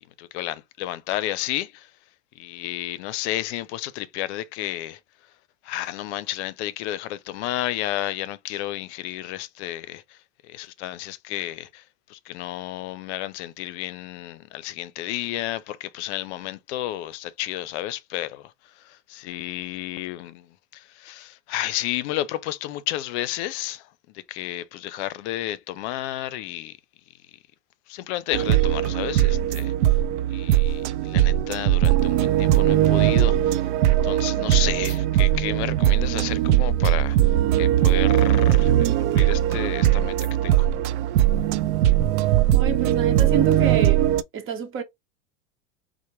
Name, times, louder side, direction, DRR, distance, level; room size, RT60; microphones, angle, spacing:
voice 1, 0.2-1.9 2.3-5.0 5.6-26.8 27.9-30.0 30.3-40.2 40.4-40.7, left 14 dB, 65° left, 0.6 m, -32 dB
sound 1, 28.3-44.2, right 12 dB, 70° right, 0.6 m, -20 dB
voice 2, 42.5-44.1 44.3-44.8, right 5 dB, 35° right, 1.0 m, -28 dB
4.4 x 2.2 x 3.0 m
hypercardioid pair, 110°, 37 cm